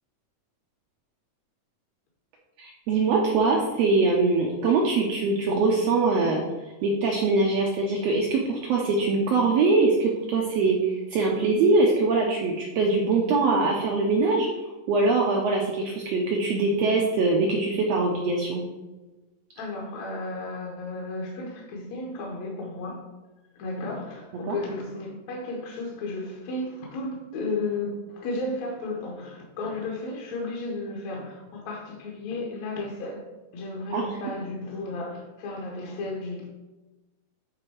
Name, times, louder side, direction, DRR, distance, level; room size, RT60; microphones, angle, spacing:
voice 1, 2.6-6.4 6.8-14.5 14.9-18.6 24.5-24.6 33.9-34.0, right 3 dB, 80° right, -1 dB, 1.5 m, -23 dB
voice 2, 19.6-23.0 23.5-33.2 33.5-36.5, left 2 dB, 65° left, -2 dB, 1.9 m, -33 dB
8.1 x 3.8 x 4.5 m, 1.1 s
omnidirectional pair, 3.8 m